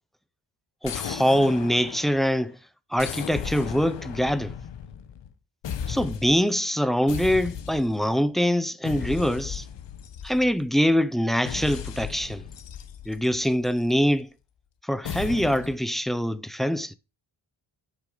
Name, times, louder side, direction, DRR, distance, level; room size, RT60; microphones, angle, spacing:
sound 1, 0.8-2.4 3.0-5.3 5.6-6.5 7.1-8.1 8.8-10.7 11.5-13.9 15.0-15.8, left 8 dB, 65° left, 1.1 m, -36 dB
voice 1, 0.8-2.6 2.9-4.5 5.9-9.7 10.2-12.4 13.1-14.3 14.8-16.9, equal, ahead, 0.3 m, -24 dB
8.5 x 6.3 x 5.0 m
wide cardioid pair, 135°, 46 cm